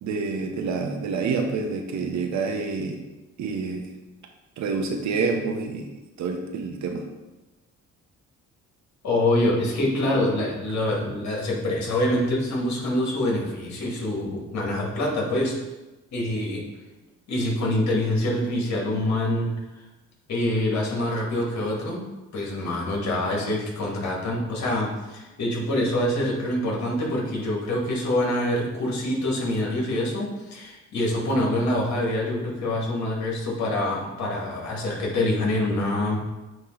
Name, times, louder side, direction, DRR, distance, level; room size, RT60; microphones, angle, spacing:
voice 1, 0.0-3.0 3.4-3.8 4.6-5.9 6.2-7.0, right 4 dB, 70° right, 4 dB, 1.0 m, -27 dB
voice 2, 9.0-15.6 16.1-16.6 17.3-19.5 19.7-19.8 20.3-22.0 22.3-36.4, left 1 dB, 65° left, -2 dB, 2.2 m, -25 dB
8.9 x 3.0 x 3.9 m, 1.1 s
cardioid pair, 90°, 30 cm